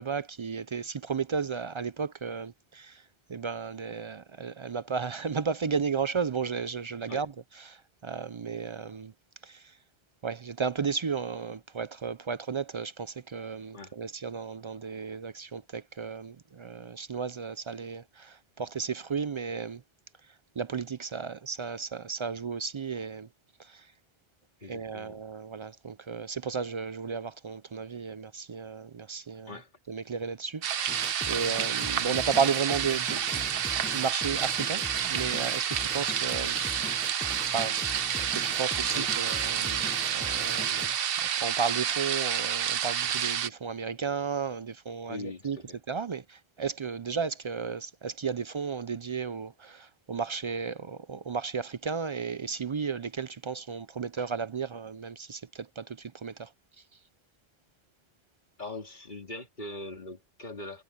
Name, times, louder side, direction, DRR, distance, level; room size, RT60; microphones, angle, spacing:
voice 1, 0.0-9.1 9.4-9.8 10.2-19.8 20.3-23.3 23.6-23.9 24.7-29.6 29.9-31.0 31.3-33.6 33.9-37.2 37.5-37.8 38.2-40.9 41.2-45.6 45.9-56.5, right 5 dB, 50° right, 0.3 m, -34 dB
voice 2, 24.6-25.2 29.4-29.7 38.9-39.1 45.1-45.8 58.6-60.8, left 2 dB, 50° left, 3.1 m, -41 dB
sound 1, 30.6-43.5, right 9 dB, 65° right, 0.9 m, -29 dB
sound 2, 30.9-40.9, left 2 dB, 10° left, 0.6 m, -41 dB
omnidirectional pair, 1.1 m